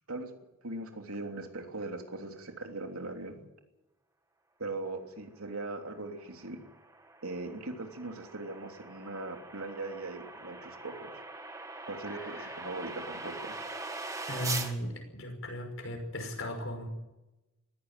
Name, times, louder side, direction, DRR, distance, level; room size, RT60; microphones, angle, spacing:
voice 1, 0.6-3.4 4.6-6.6 7.2-11.2 11.9-13.6, right 2 dB, 80° right, 4 dB, 3.2 m, -40 dB
sound 1, 6.1-14.7, right 3 dB, 15° right, 1.9 m, -42 dB
voice 2, 14.3-16.9, equal, 60° left, 4 dB, 5.9 m, -37 dB
20.0 x 15.5 x 9.2 m, 1.0 s
head